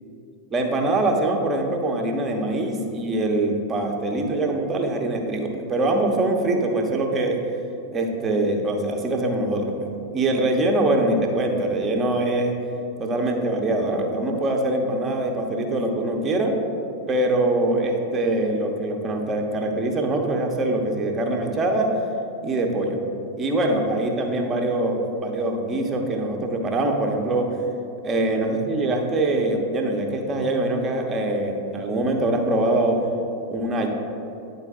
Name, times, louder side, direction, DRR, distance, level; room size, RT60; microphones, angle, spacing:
voice 1, 0.5-7.4 7.9-9.9 10.1-12.6 13.0-16.6 17.1-21.9 22.4-23.0 23.4-27.5 28.0-33.0 33.5-33.9, right 2 dB, 20° right, 2 dB, 0.8 m, -23 dB
9.9 x 4.0 x 3.5 m, 2.7 s
figure-of-eight pair, 90°, 0 cm